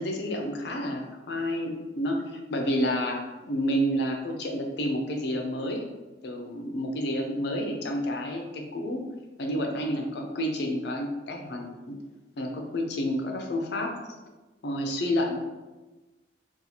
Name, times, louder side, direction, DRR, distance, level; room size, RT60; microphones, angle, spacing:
voice 1, 0.0-5.8 6.2-9.0 9.4-11.9 12.4-14.0 14.6-15.4, equal, 60° left, 2 dB, 0.5 m, -30 dB
4.0 x 2.4 x 2.8 m, 1.2 s
head